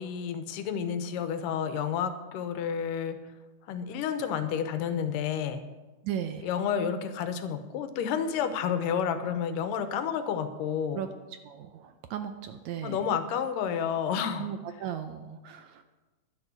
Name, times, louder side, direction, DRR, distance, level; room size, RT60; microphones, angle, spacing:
voice 1, 0.0-3.2 3.7-5.6 6.4-11.0 12.8-14.5, left 7 dB, 90° left, 10 dB, 2.5 m, -30 dB
voice 2, 6.0-6.5 10.9-11.1 11.4-13.1 14.4-15.8, right 9 dB, 75° right, 8 dB, 1.7 m, -36 dB
11.0 x 9.8 x 7.1 m, 1.2 s
omnidirectional pair, 3.8 m